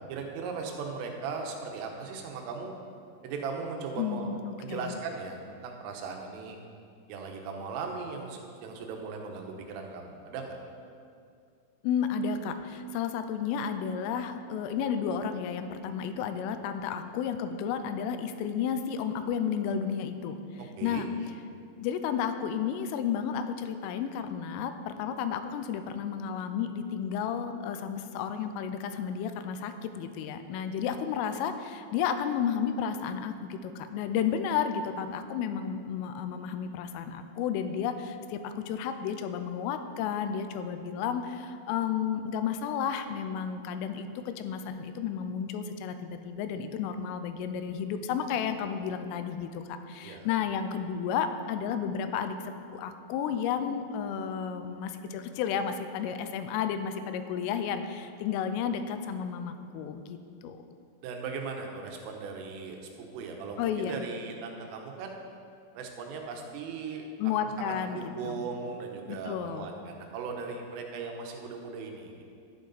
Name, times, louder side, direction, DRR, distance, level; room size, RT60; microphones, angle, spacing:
voice 1, 0.1-2.7 3.2-4.3 4.6-6.6 7.1-10.6 20.6-21.1 50.0-50.3 61.0-65.2 65.8-67.1 67.4-72.2, right 5 dB, 80° right, 3 dB, 3.6 m, -38 dB
voice 2, 4.0-5.0 11.8-20.4 20.8-21.1 21.8-60.2 60.4-60.6 63.6-64.0 67.2-68.0 68.2-68.4 69.1-69.7, left 7 dB, 85° left, 8 dB, 3.2 m, -32 dB
11.5 x 10.5 x 4.1 m, 2.4 s
omnidirectional pair, 5.8 m